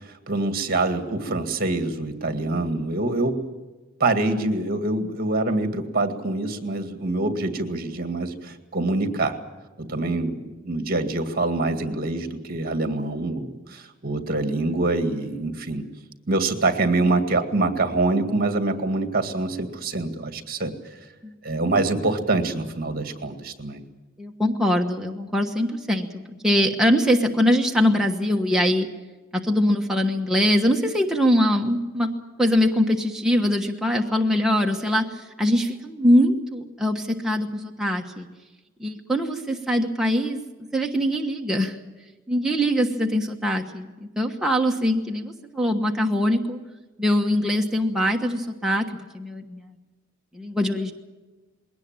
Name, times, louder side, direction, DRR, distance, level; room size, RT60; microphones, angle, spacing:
voice 1, 0.0-3.4 4.0-9.4 9.8-15.9 16.3-20.7 21.4-23.8, right 2 dB, 50° right, 7 dB, 2.1 m, -25 dB
voice 2, 24.2-26.1 26.4-28.9 29.4-32.1 32.4-35.1 35.4-38.3 38.8-40.4 40.7-41.7 42.3-46.6 47.0-48.9 49.1-49.7 50.3-50.9, equal, 5° right, 0 dB, 1.3 m, -22 dB
21.5 x 18.0 x 8.9 m, 1.2 s
head